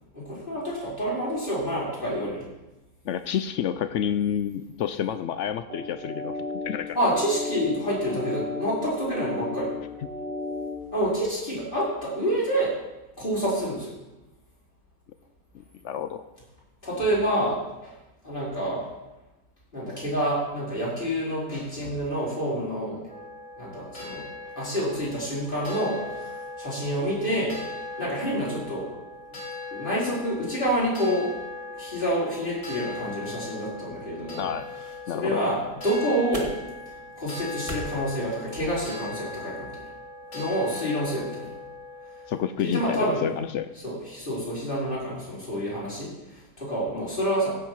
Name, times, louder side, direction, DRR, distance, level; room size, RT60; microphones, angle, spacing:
voice 1, 0.1-2.5 6.9-9.7 10.9-12.8 13.2-13.9 16.8-18.0 18.2-18.9 19.7-23.0 23.6-26.3 26.6-27.6 28.0-28.9 29.7-31.3 31.8-34.5 35.1-36.5 37.2-39.8 40.3-41.4 42.6-43.3 43.8-47.6, equal, 30° left, -8 dB, 5.3 m, -28 dB
voice 2, 3.0-6.4 6.6-7.0 15.5-16.3 34.4-34.7 35.1-35.4 42.3-43.7, left 9 dB, 85° left, 11 dB, 0.6 m, -29 dB
sound 1, 5.7-10.8, left 2 dB, 70° right, 3.6 m, -34 dB
sound 2, 23.1-42.5, left 3 dB, 45° left, 3.9 m, -39 dB
sound 3, 35.2-39.2, right 1 dB, 20° right, 1.6 m, -43 dB
16.0 x 8.4 x 4.7 m, 1.0 s
omnidirectional pair, 1.8 m